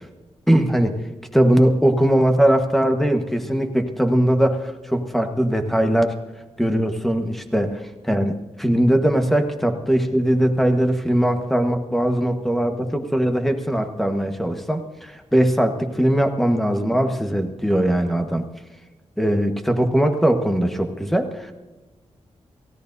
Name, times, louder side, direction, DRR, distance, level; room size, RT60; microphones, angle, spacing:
voice 1, 0.5-1.0 1.3-6.1 6.6-18.4 19.2-21.5, right 1 dB, ahead, 5 dB, 1.3 m, -20 dB
28.5 x 16.5 x 2.7 m, 1.1 s
wide cardioid pair, 155°, 12 cm